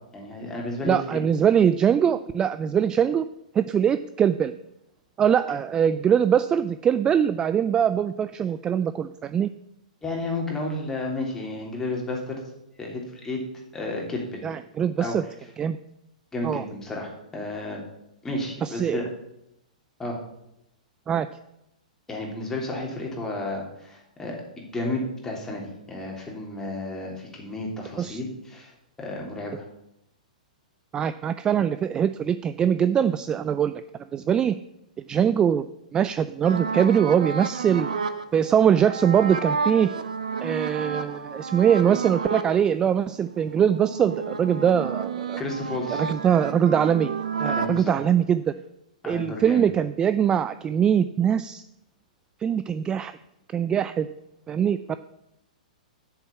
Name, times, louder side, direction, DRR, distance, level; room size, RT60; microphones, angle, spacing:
voice 1, 0.1-1.2 10.0-12.4 12.8-13.4 13.7-14.4 15.0-15.2 16.3-17.8 18.2-19.0 20.0-20.2 22.1-29.6 45.4-46.0 47.4-48.0 49.0-49.6, left 2 dB, 10° left, -1 dB, 3.2 m, -32 dB
voice 2, 0.8-3.3 3.5-4.5 5.2-9.5 14.4-15.2 15.6-15.8 16.4-16.6 18.6-19.0 21.1-21.3 28.0-28.2 30.9-33.8 34.1-34.6 35.1-35.6 35.9-37.9 38.3-39.9 40.4-45.4 45.9-47.1 47.4-48.4 49.1-51.6 52.4-53.1 53.5-54.1 54.5-55.0, right 8 dB, 20° right, 13 dB, 0.3 m, -22 dB
sound 1, 36.4-42.6 43.0-47.8, right 5 dB, 65° right, 1.0 m, -31 dB
8.0 x 7.0 x 8.4 m, 0.85 s
figure-of-eight pair, 110°, 4 cm